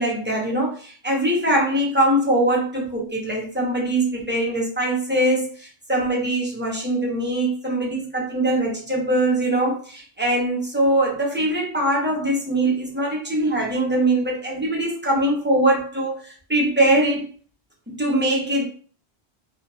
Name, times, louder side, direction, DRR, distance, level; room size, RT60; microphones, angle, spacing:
voice 1, 0.0-17.2 17.9-18.7, right 1 dB, 10° right, -3 dB, 0.7 m, -22 dB
2.4 x 2.4 x 3.2 m, 0.42 s
omnidirectional pair, 1.0 m